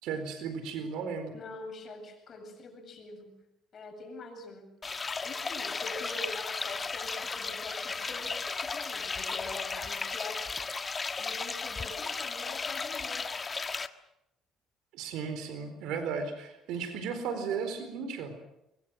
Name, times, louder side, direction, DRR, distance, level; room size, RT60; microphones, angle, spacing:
voice 1, 0.0-1.3 14.9-18.3, right 5 dB, 80° right, 9 dB, 4.3 m, -35 dB
voice 2, 1.3-3.3 3.7-4.7 5.2-10.5 11.2-13.4, left 3 dB, 45° left, 5 dB, 8.0 m, -44 dB
sound 1, 4.8-13.9, left 4 dB, 25° left, 1.5 m, -35 dB
23.5 x 22.5 x 7.6 m, 0.84 s
cardioid pair, 105°, 0 cm